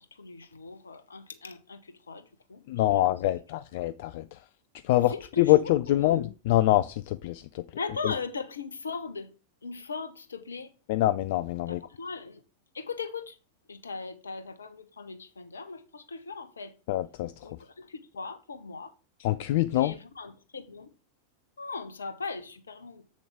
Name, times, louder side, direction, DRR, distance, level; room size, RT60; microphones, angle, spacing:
voice 1, 0.0-2.6 2.9-3.4 4.9-6.3 7.8-9.3 9.6-10.7 11.7-12.4 12.7-13.4 13.7-16.7 17.4-18.9 19.7-20.9 21.6-23.0, left 4 dB, 70° left, 1.0 m, -39 dB
voice 2, 2.7-4.4 4.8-7.6 10.9-11.8 16.9-17.3 19.2-19.9, left 15 dB, 50° left, 0.3 m, -25 dB
7.7 x 7.0 x 3.5 m
figure-of-eight pair, 90°, 0 cm